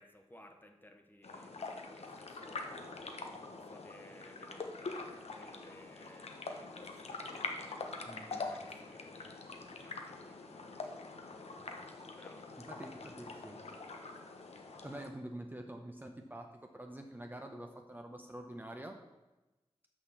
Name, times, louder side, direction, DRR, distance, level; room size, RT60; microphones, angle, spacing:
voice 1, 0.0-2.7 3.2-7.8 8.3-11.4 12.1-12.5, left 1 dB, 20° left, 4 dB, 1.1 m, -60 dB
sound 1, 1.2-15.1, left 3 dB, 75° left, 0.9 m, -44 dB
voice 2, 8.0-8.6 11.6-11.7 12.6-13.6 14.8-19.0, right 1 dB, 15° right, 3 dB, 0.8 m, -47 dB
6.4 x 5.8 x 7.0 m, 1.1 s
wide cardioid pair, 80°, 11 cm